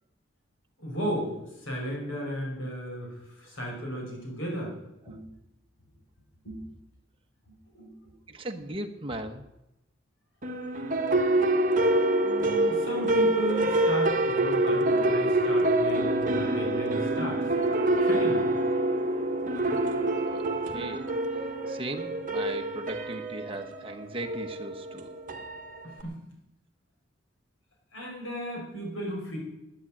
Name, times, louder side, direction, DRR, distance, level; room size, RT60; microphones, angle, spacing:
voice 1, 0.8-4.7 5.0-5.3 6.4-6.7 7.5-7.9 12.1-17.5 18.0-18.5 25.8-26.2 27.9-29.4, equal, 75° left, -1 dB, 5.7 m, -35 dB
voice 2, 8.3-9.4 20.3-20.5 20.7-21.1 21.7-25.1, right 1 dB, 30° right, 4 dB, 1.2 m, -37 dB
sound 1, 10.4-26.0, right 1 dB, 45° right, 1.5 m, -26 dB
11.0 x 9.9 x 8.9 m, 0.90 s
head